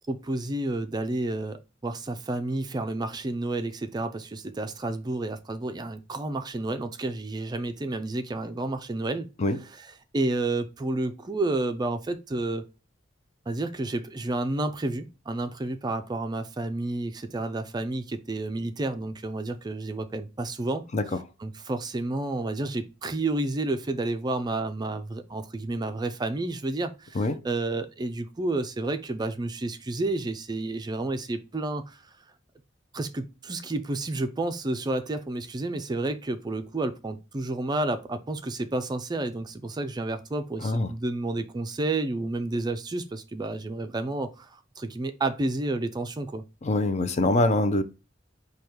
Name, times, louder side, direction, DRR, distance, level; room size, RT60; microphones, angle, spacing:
voice 1, 0.1-12.7 13.5-21.1 21.4-32.1 32.9-46.4, right 2 dB, 20° right, 0.4 m, -30 dB
voice 2, 46.6-47.8, left 2 dB, 35° left, 0.5 m, -23 dB
5.0 x 2.3 x 4.4 m
head